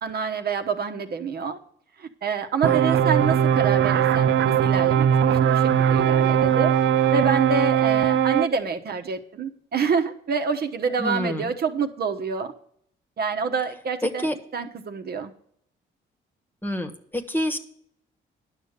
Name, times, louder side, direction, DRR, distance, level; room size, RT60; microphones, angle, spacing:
voice 1, 0.0-1.6 2.0-6.7 7.1-12.5 13.2-14.3 14.5-15.3, right 5 dB, 50° right, 7 dB, 1.1 m, -27 dB
voice 2, 2.6-3.0 11.0-11.5 14.0-14.3 16.6-17.6, left 1 dB, 10° left, 5 dB, 1.3 m, -28 dB
sound 1, 2.6-8.5, right 9 dB, 75° right, 0.6 m, -20 dB
11.0 x 6.5 x 6.7 m, 0.65 s
cardioid pair, 90°, 20 cm